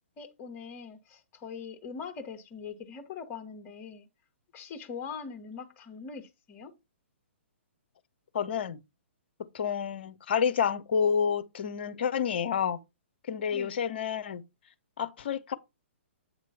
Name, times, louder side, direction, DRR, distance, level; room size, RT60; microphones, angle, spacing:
voice 1, 0.2-4.0 4.5-6.7 13.5-13.8, left 6 dB, 30° left, 1.2 m, -42 dB
voice 2, 8.3-8.8 9.5-12.8 13.3-14.4 15.0-15.5, left 7 dB, 50° left, 0.7 m, -29 dB
8.3 x 3.0 x 5.6 m
figure-of-eight pair, 120°, 7 cm